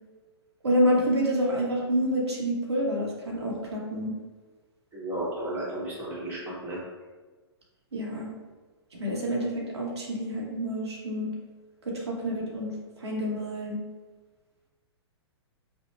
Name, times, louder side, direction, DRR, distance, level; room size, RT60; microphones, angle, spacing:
voice 1, 0.6-4.1 7.9-8.3 9.0-11.3 11.9-13.8, equal, 75° right, -3 dB, 0.9 m, -28 dB
voice 2, 4.9-6.8, right 1 dB, 15° right, -7 dB, 1.2 m, -33 dB
5.2 x 2.2 x 2.4 m, 1.3 s
figure-of-eight pair, 110°, 14 cm